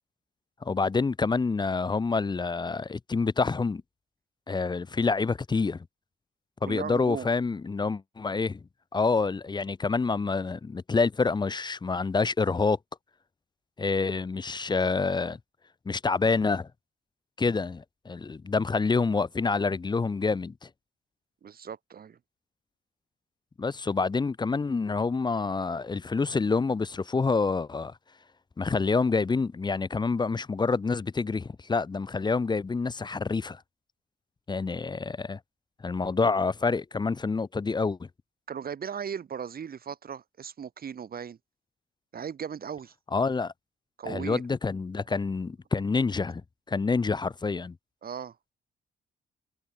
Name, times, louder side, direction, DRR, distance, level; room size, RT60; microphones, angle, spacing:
voice 1, 0.6-3.8 4.5-5.9 6.6-8.6 8.9-12.8 13.8-15.4 15.9-16.7 17.4-20.7 23.6-27.9 28.6-33.6 34.5-35.4 35.8-38.1 43.1-43.5 44.0-46.4 46.7-47.8, left 4 dB, 20° left, 0.7 m, -27 dB
voice 2, 6.6-7.3 21.4-22.2 38.5-41.4 42.1-42.9 44.0-44.4 48.0-48.3, right 7 dB, 50° right, 2.9 m, -37 dB
cardioid pair, 90°, 20 cm